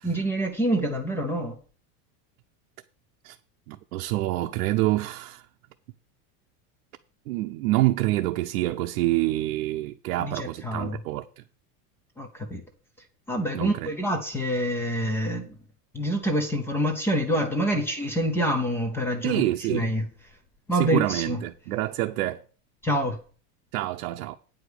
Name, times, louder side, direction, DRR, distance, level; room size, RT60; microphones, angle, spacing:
voice 1, 0.0-1.6 10.2-11.0 12.2-12.6 13.0-15.6 15.9-20.1 20.7-21.4 22.8-23.2, equal, 5° left, 0.5 m, -27 dB
voice 2, 3.7-5.4 7.3-11.4 13.5-13.9 19.2-19.9 20.8-22.4 23.7-24.4, right 17 dB, 70° right, 0.8 m, -27 dB
9.5 x 5.1 x 7.8 m
supercardioid pair, 175°, 47 cm